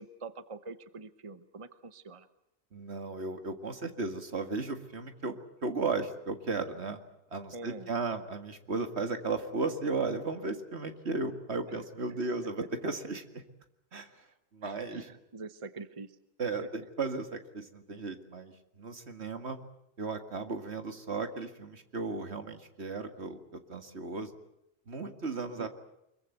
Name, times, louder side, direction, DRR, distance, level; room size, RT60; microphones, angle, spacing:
voice 1, 0.0-2.3 7.5-7.9 11.7-11.8 14.6-16.2 25.6-25.7, right 3 dB, 30° right, 12 dB, 1.0 m, -45 dB
voice 2, 2.7-5.3 5.6-7.0 7.3-13.4 13.9-14.3 14.5-15.1 16.4-19.6 20.0-24.3 24.9-25.7, right 3 dB, 75° right, 7 dB, 2.2 m, -35 dB
24.5 x 22.5 x 8.0 m, 0.83 s
omnidirectional pair, 1.1 m